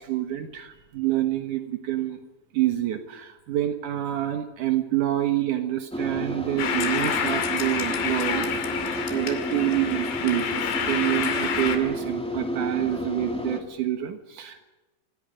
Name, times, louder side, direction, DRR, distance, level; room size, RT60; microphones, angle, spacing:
voice 1, 0.0-2.2 2.5-8.5 8.8-14.6, right 13 dB, 90° right, 6 dB, 1.7 m, -27 dB
sound 1, 5.9-13.6, equal, 5° left, 0.9 m, -31 dB
sound 2, 6.6-11.8, left 7 dB, 65° left, 4.5 m, -28 dB
26.5 x 26.0 x 5.2 m, 1.1 s
omnidirectional pair, 5.8 m